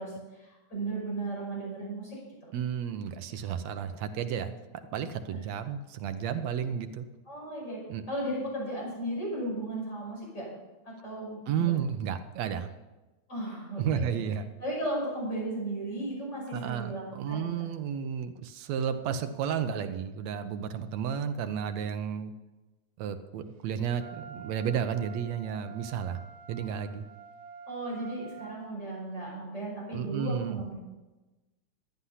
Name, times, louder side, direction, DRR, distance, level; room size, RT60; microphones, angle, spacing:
voice 1, 0.0-2.5 5.3-5.4 7.3-7.8 8.1-10.5 10.8-11.8 13.3-14.1 14.6-17.5 27.7-30.7, right 1 dB, 20° left, -4 dB, 6.0 m, -35 dB
voice 2, 2.5-4.5 4.9-7.1 7.9-8.1 11.5-12.7 13.8-14.5 16.5-22.3 23.0-26.2 26.5-27.1 29.9-30.6, right 8 dB, 75° right, 9 dB, 1.9 m, -32 dB
Wind instrument woodwind instrument, 24.0-28.6, right 5 dB, 55° right, 1.8 m, -48 dB
13.5 x 9.6 x 5.6 m, 1.1 s
omnidirectional pair, 3.4 m